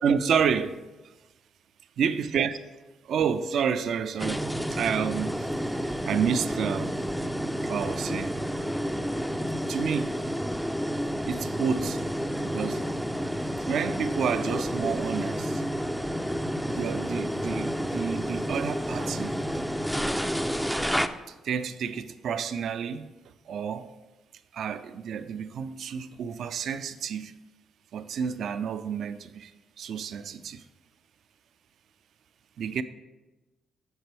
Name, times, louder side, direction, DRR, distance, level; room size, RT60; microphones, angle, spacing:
voice 1, 0.0-0.8 2.0-2.7 3.0-5.5 5.8-7.0 7.6-8.4 9.5-10.2 11.3-12.0 12.5-12.8 13.7-15.6 16.7-19.4 21.3-23.1 23.5-23.9 24.5-27.3 27.9-29.5 29.8-30.6 32.6-32.8, right 7 dB, 65° right, 0.4 m, -30 dB
sound 1, 4.2-21.1, equal, ahead, 0.4 m, -30 dB
8.9 x 6.0 x 3.3 m
cardioid pair, 90°, 0 cm